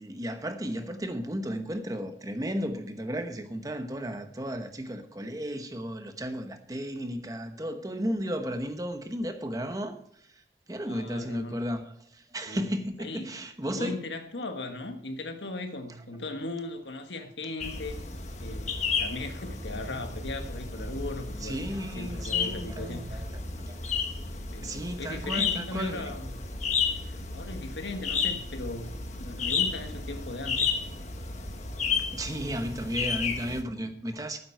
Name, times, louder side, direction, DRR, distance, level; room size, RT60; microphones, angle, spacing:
voice 1, 0.0-10.0 10.7-14.0 21.4-23.3 23.7-23.8 24.6-26.1 32.1-34.4, equal, 20° right, 1.0 m, -34 dB
voice 2, 10.8-11.6 12.4-12.7 13.0-13.4 13.7-18.0 18.4-21.6 21.9-23.2 24.5-26.4 27.0-30.7, left 2 dB, 85° left, 1.6 m, -38 dB
sound 1, 17.6-33.6, left 5 dB, 40° left, 1.4 m, -32 dB
12.0 x 9.5 x 4.6 m
head